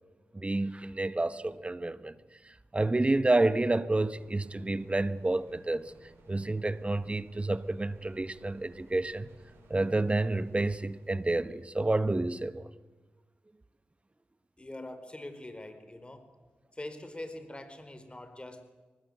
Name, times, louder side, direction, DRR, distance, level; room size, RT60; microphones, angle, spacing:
voice 1, 0.3-2.1 2.4-9.3 9.7-12.7, right 2 dB, 30° right, 1.3 m, -29 dB
sound 1, 4.1-12.6, right 2 dB, 85° right, 5.7 m, -60 dB
voice 2, 14.6-16.3 16.7-18.6, left 1 dB, 25° left, 4.4 m, -43 dB
23.5 x 19.5 x 8.0 m
cardioid pair, 40°, 4 cm